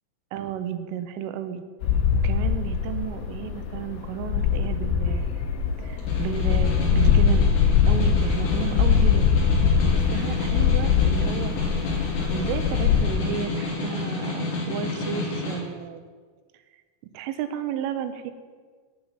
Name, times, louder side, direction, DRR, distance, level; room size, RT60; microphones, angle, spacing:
voice 1, 0.3-1.6 2.2-5.5 5.8-7.5 7.9-9.3 9.8-11.9 12.3-16.1 17.1-18.3, right 9 dB, 90° right, 10 dB, 3.4 m, -33 dB
sound 1, 1.8-13.1, left 7 dB, 70° left, 3.0 m, -22 dB
Snare drum, 6.0-15.6, left 3 dB, 50° left, 3.6 m, -30 dB
9.5 x 8.1 x 8.7 m, 1.5 s
omnidirectional pair, 5.6 m